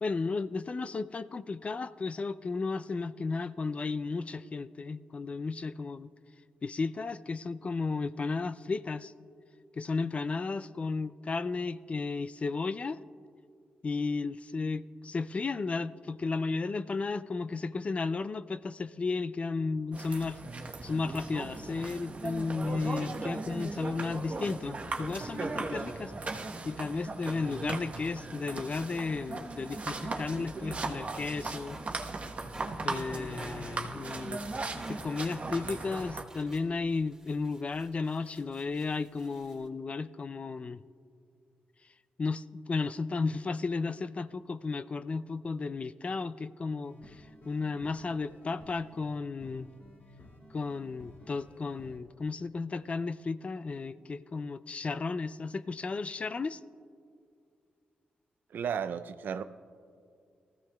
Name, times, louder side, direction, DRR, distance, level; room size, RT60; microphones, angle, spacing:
voice 1, 0.0-6.1 6.6-9.1 9.8-13.0 13.8-20.4 20.8-31.8 32.8-34.4 34.7-40.8 42.2-49.7 50.5-56.6, left 4 dB, 40° left, 0.3 m, -34 dB
sound 1, 19.9-36.2, right 3 dB, 40° right, 1.1 m, -38 dB
sound 2, 30.6-39.7, right 1 dB, 15° right, 2.4 m, -52 dB
sound 3, 46.8-52.0, left 1 dB, 65° left, 2.4 m, -54 dB
voice 2, 58.5-59.4, right 7 dB, 70° right, 0.5 m, -33 dB
19.0 x 14.5 x 2.3 m
cardioid pair, 65°, 3 cm